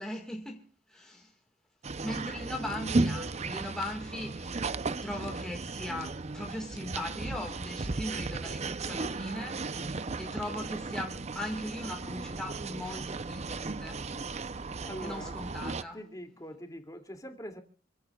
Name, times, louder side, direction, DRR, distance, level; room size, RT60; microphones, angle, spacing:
voice 1, 0.0-1.3 2.0-4.7 5.0-14.0 15.0-16.0, left 1 dB, 5° left, 1.9 m, -39 dB
sound 1, 1.8-15.8, right 3 dB, 35° right, 0.7 m, -35 dB
voice 2, 14.8-15.4 15.9-17.6, equal, 20° left, 2.7 m, -43 dB
28.0 x 15.5 x 2.4 m
head